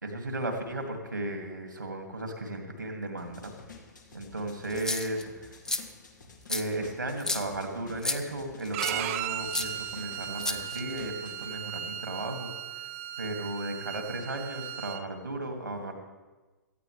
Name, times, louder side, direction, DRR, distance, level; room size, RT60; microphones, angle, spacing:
voice 1, 0.0-3.5 4.1-5.6 6.5-12.5 13.2-15.9, right 1 dB, 90° right, 3 dB, 2.4 m, -35 dB
sound 1, 3.2-11.5, left 5 dB, 75° left, 2.3 m, -51 dB
sound 2, 4.7-5.2 5.7-5.8 6.5-6.6 7.2-7.4 8.0-8.2 8.8-9.0 9.5-9.7 10.4-11.0, left 2 dB, 5° left, 0.6 m, -31 dB
Bowed string instrument, 8.7-15.0, right 12 dB, 40° right, 0.7 m, -37 dB
18.0 x 14.0 x 3.4 m, 1.2 s
figure-of-eight pair, 120°, 10 cm